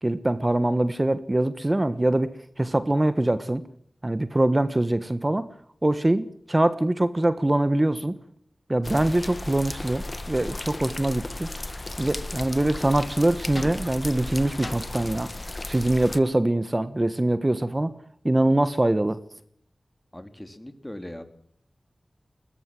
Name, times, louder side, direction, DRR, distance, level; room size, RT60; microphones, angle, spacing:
voice 1, 0.0-2.3 2.6-3.6 4.0-5.5 5.8-8.2 8.7-11.5 12.0-15.3 15.7-17.9 18.2-19.2, right 1 dB, 30° right, 12 dB, 1.3 m, -23 dB
sound 1, 8.8-16.2, left 2 dB, 40° left, 1.5 m, -35 dB
voice 2, 20.1-21.2, left 1 dB, 20° left, 8 dB, 3.4 m, -39 dB
21.5 x 20.5 x 7.7 m, 0.66 s
wide cardioid pair, 50°, 0 cm